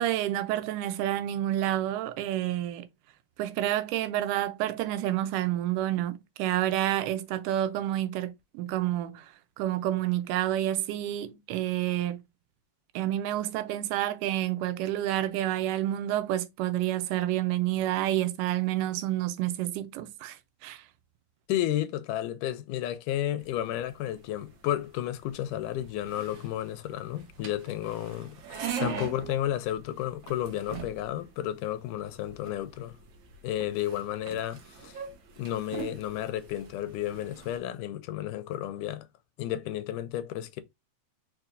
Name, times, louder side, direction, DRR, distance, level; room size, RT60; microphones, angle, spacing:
voice 1, 0.0-2.9 3.4-12.2 13.0-20.8 28.6-29.1, right 13 dB, 90° right, 2.2 m, -29 dB
voice 2, 21.5-33.0 33.4-35.0 35.4-39.1 39.4-40.6, left 12 dB, 90° left, 2.2 m, -32 dB
sound 1, 23.4-37.6, right 6 dB, 65° right, 1.2 m, -43 dB
4.7 x 4.5 x 2.5 m
omnidirectional pair, 3.6 m